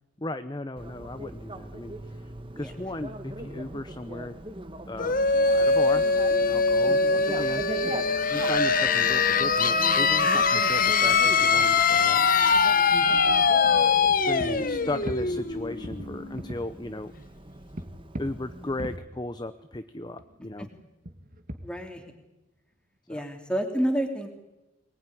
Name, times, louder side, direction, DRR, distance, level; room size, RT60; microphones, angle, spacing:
voice 1, 0.2-2.2 2.6-4.4 4.9-5.2 5.5-6.1 6.4-7.6 8.3-12.3 14.2-17.1 18.2-20.7 23.1-23.2, left 2 dB, 20° left, 10 dB, 0.8 m, -36 dB
Bicycle, 0.8-19.0, right 1 dB, 25° right, 1.6 m, -41 dB
sound 1, 5.0-16.5, left 4 dB, 45° left, 1.3 m, -22 dB
voice 2, 6.9-7.2 8.8-8.9 12.9-13.5 14.3-14.5 20.6-20.7 21.6-22.0 23.1-24.3, equal, 5° left, 4 dB, 3.1 m, -31 dB
sound 2, 13.5-13.6 14.1-15.5 15.8-16.7 17.7-19.6 20.0-22.2, equal, 45° right, 2.0 m, -40 dB
23.0 x 20.0 x 10.0 m, 1.0 s
head